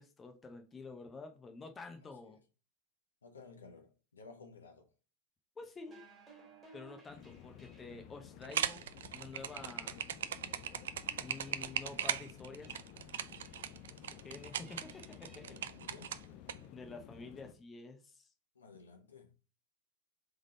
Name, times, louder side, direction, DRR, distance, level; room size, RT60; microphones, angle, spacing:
voice 1, 0.0-2.4 5.6-6.0 6.7-8.8 9.1-10.0 11.2-12.8 14.1-15.4 16.7-18.3, left 3 dB, 15° left, 0.8 m, -49 dB
voice 2, 1.9-2.4 3.2-4.9 15.4-16.2 18.5-19.3, left 4 dB, 70° left, 1.0 m, -55 dB
sound 1, 5.8-8.1 8.8-9.0 9.5-10.0 10.5-10.9 11.4-12.0 12.6-12.9 13.3-13.9 14.3-15.6, right 3 dB, 15° right, 1.8 m, -61 dB
sound 2, 7.1-17.5, left 10 dB, 40° left, 0.5 m, -54 dB
sound 3, 8.4-16.5, right 10 dB, 60° right, 0.3 m, -38 dB
3.7 x 3.5 x 4.1 m
figure-of-eight pair, 90°, 0 cm